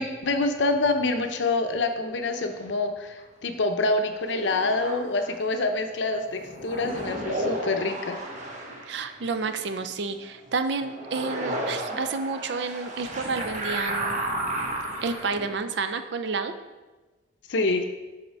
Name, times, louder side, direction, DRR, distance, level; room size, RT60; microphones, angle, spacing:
voice 1, 0.0-8.2 17.5-17.9, left 3 dB, 70° left, 7 dB, 0.6 m, -26 dB
sound 1, 2.0-2.8 4.1-5.6 6.1-10.1 10.5-15.6, right 1 dB, 40° right, 1.0 m, -33 dB
voice 2, 8.9-14.2 15.0-16.5, right 4 dB, 65° right, 9 dB, 0.5 m, -30 dB
6.4 x 4.3 x 4.6 m, 1.2 s
head